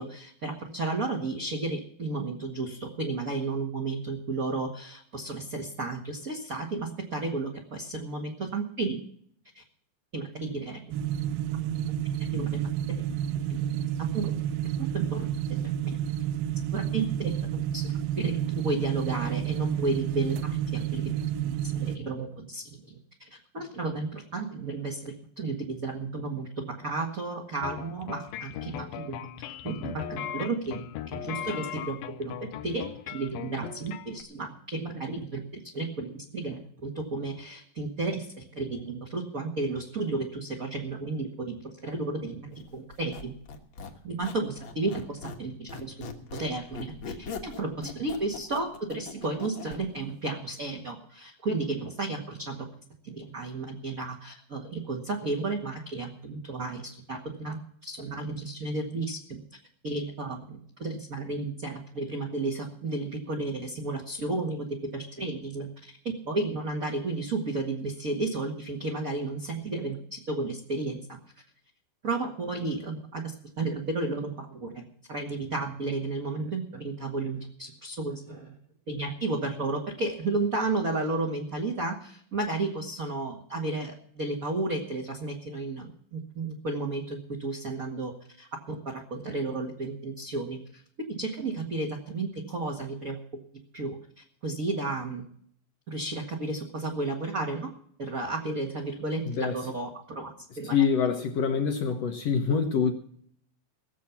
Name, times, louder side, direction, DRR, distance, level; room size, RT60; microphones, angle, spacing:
voice 1, 0.0-9.0 9.5-9.6 10.1-10.8 12.3-12.6 13.5-13.6 14.0-14.3 14.6-16.0 16.7-29.3 29.6-30.8 31.1-43.3 44.0-46.1 46.4-52.6 53.0-59.4 59.8-71.2 72.0-78.5 78.9-93.2 93.7-95.2 95.9-97.7 98.0-100.8, right 3 dB, 40° right, -1 dB, 1.2 m, -33 dB
sound 1, 10.9-22.0, right 10 dB, 85° right, 2.6 m, -30 dB
sound 2, 27.6-34.2, left 11 dB, 90° left, 2.6 m, -38 dB
Squeak, 42.9-45.4 45.7-49.8, left 4 dB, 50° left, 1.6 m, -40 dB
voice 2, 100.7-102.9, left 6 dB, 65° left, 5 dB, 1.6 m, -25 dB
18.0 x 7.5 x 7.1 m, 0.62 s
omnidirectional pair, 4.1 m